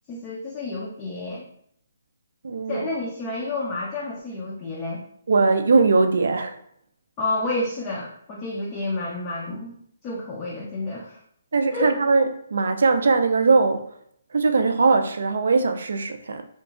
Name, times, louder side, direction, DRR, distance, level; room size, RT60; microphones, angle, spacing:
voice 1, 0.1-1.4 2.7-5.0 7.2-9.8 10.0-11.2 11.7-11.9, left 2 dB, 15° left, 0.4 m, -30 dB
voice 2, 2.4-2.9 5.3-6.6 11.5-13.8 14.3-16.4, right 4 dB, 70° right, 0.3 m, -20 dB
2.8 x 2.4 x 2.3 m
hypercardioid pair, 170°, 0 cm